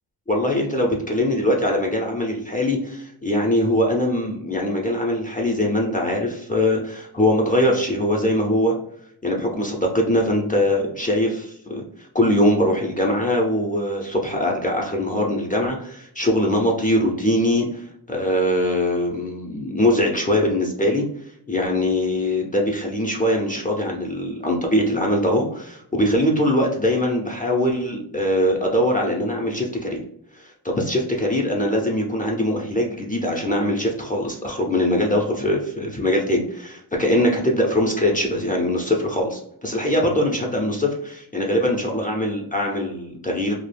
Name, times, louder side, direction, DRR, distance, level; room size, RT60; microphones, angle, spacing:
voice 1, 0.3-8.7 9.2-11.8 12.1-21.0 21.5-30.0 30.3-43.6, left 1 dB, 20° left, -1 dB, 0.5 m, -22 dB
2.3 x 2.0 x 3.2 m, 0.72 s
wide cardioid pair, 90°, 40 cm